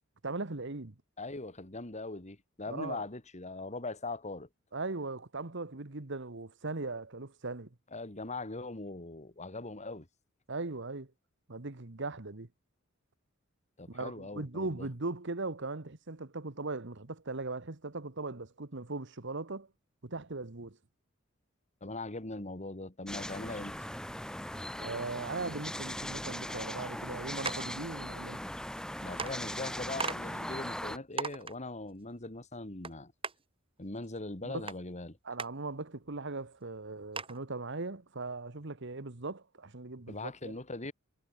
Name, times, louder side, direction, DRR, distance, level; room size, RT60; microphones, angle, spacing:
voice 1, 0.2-0.9 2.7-3.0 4.7-7.7 10.5-11.1 11.5-12.5 13.9-19.7 20.0-20.8 24.5-28.4 34.4-34.7 35.2-40.6, right 3 dB, 60° right, 1.5 m, -39 dB
voice 2, 1.2-4.5 7.9-10.1 13.8-14.9 21.8-23.9 29.0-33.1 33.8-35.2 40.1-40.9, left 2 dB, 35° left, 2.4 m, -41 dB
sound 1, 23.1-31.0, equal, 5° left, 4.1 m, -39 dB
sound 2, 27.5-27.7 28.8-28.9 29.2-29.3 30.0-30.2 30.7-30.8 31.2-31.5 32.8-32.9 33.2-33.3 34.7-34.8 35.4-35.5 36.1-36.2 36.5-36.6 37.2-37.4, right 5 dB, 25° right, 3.2 m, -36 dB
head